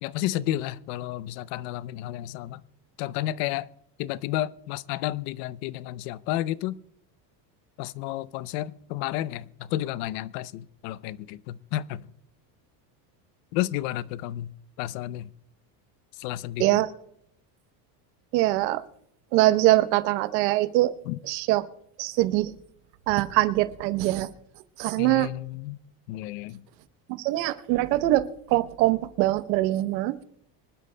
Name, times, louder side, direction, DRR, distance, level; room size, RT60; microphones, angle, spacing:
voice 1, 0.0-2.6 3.0-3.7 4.0-6.8 7.8-12.1 13.5-14.5 14.8-15.3 16.2-16.9 21.1-21.2 25.0-25.8 26.1-26.6, left 14 dB, 75° left, 0.7 m, -31 dB
voice 2, 18.3-18.8 19.3-20.9 21.2-21.6 22.0-22.5 23.1-24.3 24.8-25.3 27.1-30.2, right 17 dB, 85° right, 1.0 m, -23 dB
24.5 x 12.0 x 2.2 m
supercardioid pair, 125°, 49 cm